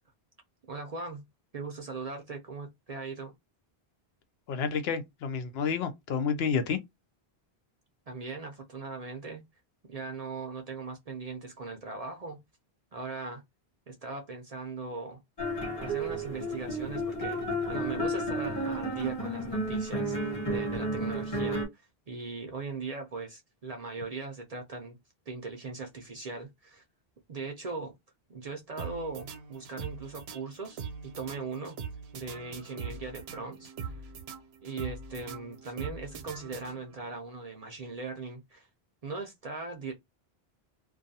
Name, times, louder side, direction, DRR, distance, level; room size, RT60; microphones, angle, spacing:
voice 1, 0.7-1.3 1.5-3.3 8.1-9.5 9.9-12.4 12.9-13.4 13.9-15.2 15.8-25.0 25.3-26.8 27.3-27.9 28.3-31.8 32.1-33.9 34.6-38.7 39.0-39.9, right 4 dB, 50° right, 0.5 m, -39 dB
voice 2, 4.5-6.8, left 6 dB, 75° left, 0.8 m, -30 dB
sound 1, 15.4-21.6, right 1 dB, 25° left, 1.1 m, -32 dB
sound 2, 28.8-37.1, right 5 dB, 85° right, 0.8 m, -42 dB
2.3 x 2.3 x 2.6 m
omnidirectional pair, 1.0 m